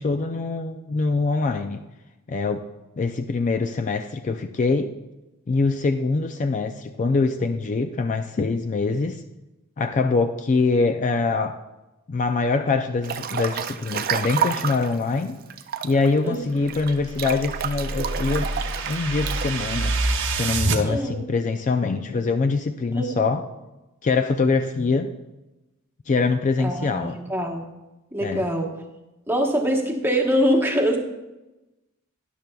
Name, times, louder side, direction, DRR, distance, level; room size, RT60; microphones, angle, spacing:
voice 1, 0.0-1.8 2.3-2.7 3.0-5.0 5.5-9.2 9.8-11.6 12.1-15.4 15.8-18.5 18.9-19.9 20.3-23.4 24.0-25.1 26.1-27.2 28.2-28.5, left 4 dB, 35° left, 7 dB, 0.4 m, -24 dB
Breathing / Bathtub (filling or washing) / Splash splatter, 13.0-14.9 15.5-19.5, right 8 dB, 45° right, 0.4 m, -29 dB
sound 1, 16.8-20.8, right 2 dB, 60° right, 0.9 m, -26 dB
voice 2, 20.8-21.2 23.0-23.3 26.6-27.7 28.1-28.8 29.3-31.0, equal, 10° right, 2 dB, 1.1 m, -24 dB
12.5 x 10.5 x 2.3 m, 1.0 s
head